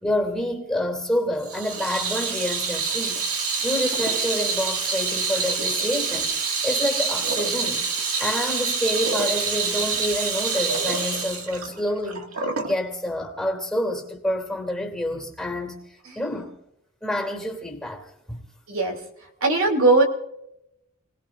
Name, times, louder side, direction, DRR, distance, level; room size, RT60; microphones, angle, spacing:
voice 1, 0.0-3.2 3.6-7.9 8.2-12.3 12.6-16.5 17.0-18.4, left 1 dB, 5° left, 2.7 m, -28 dB
Water tap faucet / Sink (filling or washing), 1.4-12.8, right 5 dB, 80° right, 2.0 m, -26 dB
voice 2, 18.7-19.0 19.4-20.0, right 3 dB, 60° right, 2.8 m, -18 dB
30.0 x 19.5 x 2.5 m
head